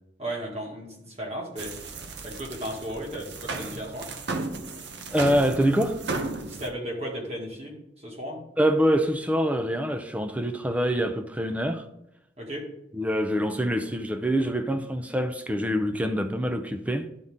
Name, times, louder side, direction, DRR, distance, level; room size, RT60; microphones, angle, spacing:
voice 1, 0.2-1.8 2.2-4.1 6.5-8.4 12.4-12.7, right 1 dB, 35° right, 1.9 m, -35 dB
sound 1, 1.6-6.7, right 3 dB, 70° right, 0.8 m, -35 dB
voice 2, 5.1-6.0 8.6-11.9 12.9-17.1, equal, 10° right, 0.5 m, -25 dB
11.5 x 4.1 x 3.6 m
head